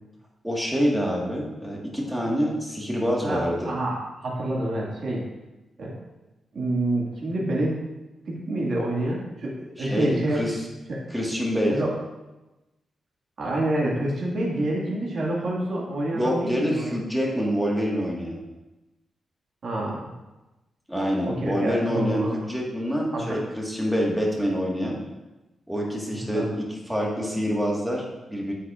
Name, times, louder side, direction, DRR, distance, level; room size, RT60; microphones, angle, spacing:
voice 1, 0.4-3.7 9.8-10.5 11.1-11.8 16.1-18.4 20.9-25.0 25.7-28.5, equal, 5° right, -2 dB, 1.6 m, -26 dB
voice 2, 3.2-5.2 5.8-5.9 6.5-7.8 8.3-10.4 10.9-11.0 11.7-11.9 13.4-17.0 19.6-20.1 21.2-22.4 23.1-23.4 26.3-26.5, right 1 dB, 55° right, -4 dB, 1.9 m, -27 dB
8.8 x 8.1 x 2.5 m, 1.1 s
wide cardioid pair, 125°, 0 cm